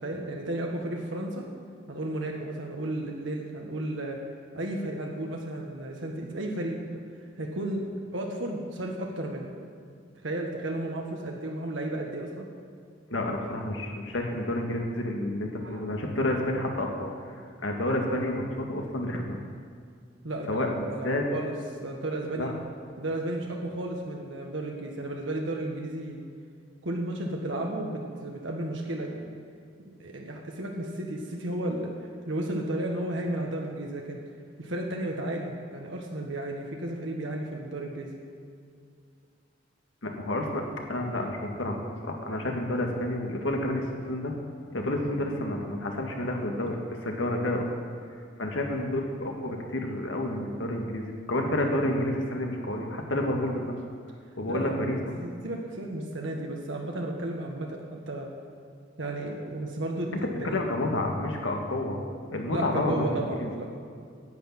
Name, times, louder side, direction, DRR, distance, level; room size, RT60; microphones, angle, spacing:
voice 1, 0.0-1.5 1.9-4.2 4.5-7.0 7.4-7.8 8.1-9.5 10.2-12.5 15.6-15.8 20.2-21.5 21.8-22.5 23.0-26.2 26.8-29.3 29.8-32.0 32.2-34.2 34.6-38.1 46.6-46.7 54.5-54.7 55.2-58.3 59.0-60.6 62.5-63.6, right 1 dB, 70° right, 0 dB, 1.5 m, -33 dB
voice 2, 13.1-17.1 17.6-19.4 20.5-20.8 21.0-21.2 22.4-22.5 40.0-40.6 40.9-44.3 44.7-47.7 48.4-53.6 54.4-55.2 60.2-62.0 62.3-63.5, left 1 dB, 75° left, 1 dB, 1.9 m, -29 dB
10.5 x 8.5 x 8.8 m, 2.2 s
head